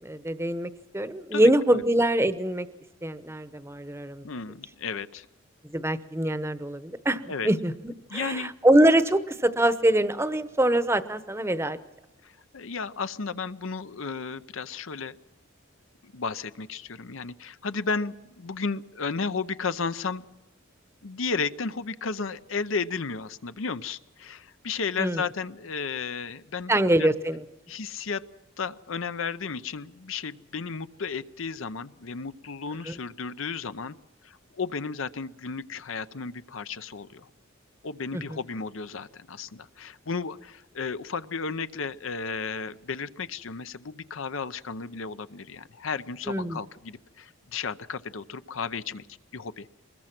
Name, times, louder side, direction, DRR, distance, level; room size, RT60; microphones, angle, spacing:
voice 1, 0.0-2.7 3.0-4.2 5.6-11.8 25.0-25.2 26.7-27.4 32.9-33.0 38.1-38.2 46.3-46.6, right 1 dB, 15° right, 12 dB, 0.8 m, -24 dB
voice 2, 1.3-1.8 4.2-5.3 7.3-7.5 8.1-8.5 12.2-15.2 16.0-20.2 21.0-26.7 27.0-27.1 27.7-28.2 28.6-33.9 34.2-37.3 37.8-49.1 49.3-49.7, left 5 dB, 80° left, 13 dB, 0.7 m, -33 dB
24.0 x 21.0 x 6.0 m, 1.1 s
head